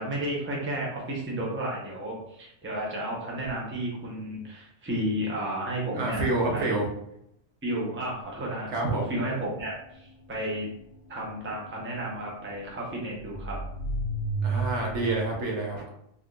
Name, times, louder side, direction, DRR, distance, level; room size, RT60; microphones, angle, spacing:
voice 1, 0.0-7.0 7.6-10.7 11.1-13.6, right 1 dB, 15° right, -3 dB, 0.6 m, -32 dB
voice 2, 5.9-6.9 8.7-9.1 14.4-15.9, right 2 dB, 70° right, -1 dB, 1.0 m, -28 dB
sound 1, 8.2-15.3, right 3 dB, 65° left, 0.9 m, -34 dB
3.6 x 2.6 x 2.3 m, 0.75 s
omnidirectional pair, 1.3 m